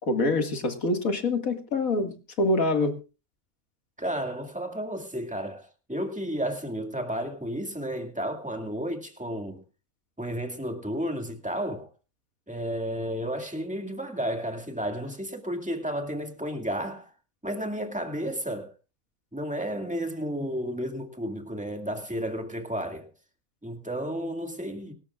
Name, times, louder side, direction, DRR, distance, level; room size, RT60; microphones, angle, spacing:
voice 1, 0.0-2.9, left 2 dB, 70° left, 2.4 m, -25 dB
voice 2, 4.0-9.6 10.2-11.9 12.5-17.1 17.4-18.7 19.3-23.1 23.6-24.9, equal, 5° right, 2.1 m, -32 dB
24.5 x 13.0 x 2.4 m
omnidirectional pair, 1.5 m